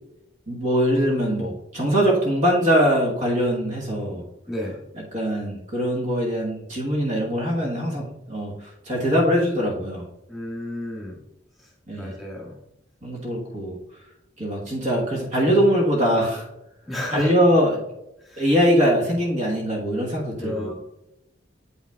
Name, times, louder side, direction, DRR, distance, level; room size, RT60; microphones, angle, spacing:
voice 1, 0.5-4.2 5.1-8.5 8.8-10.0 11.9-12.1 13.0-13.8 14.4-16.5 17.1-17.8 18.4-20.7, equal, 45° right, -3 dB, 1.3 m, -22 dB
voice 2, 4.5-4.8 10.3-11.2 11.9-12.5 16.9-17.3 18.2-18.5 20.4-20.7, left 1 dB, ahead, -4 dB, 1.7 m, -32 dB
8.2 x 5.6 x 2.3 m, 0.85 s
head